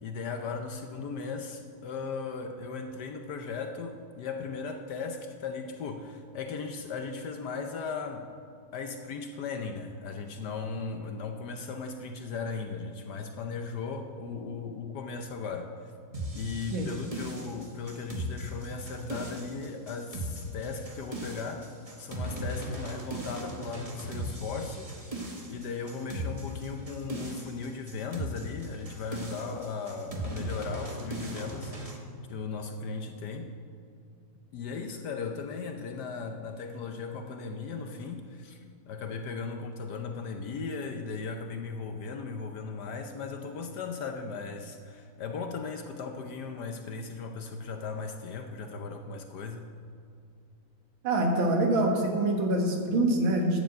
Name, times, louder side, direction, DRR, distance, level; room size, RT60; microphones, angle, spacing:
voice 1, 0.0-8.3 8.7-15.7 16.3-21.7 22.0-25.2 25.5-32.0 32.3-33.5 34.5-38.6 38.9-49.7, left 4 dB, 65° left, 5 dB, 1.1 m, -37 dB
sound 1, 16.1-32.0, right 1 dB, 25° right, 0.8 m, -37 dB
voice 2, 51.0-53.6, right 1 dB, 75° right, 2 dB, 2.2 m, -25 dB
10.5 x 7.2 x 7.6 m, 2.4 s
omnidirectional pair, 2.2 m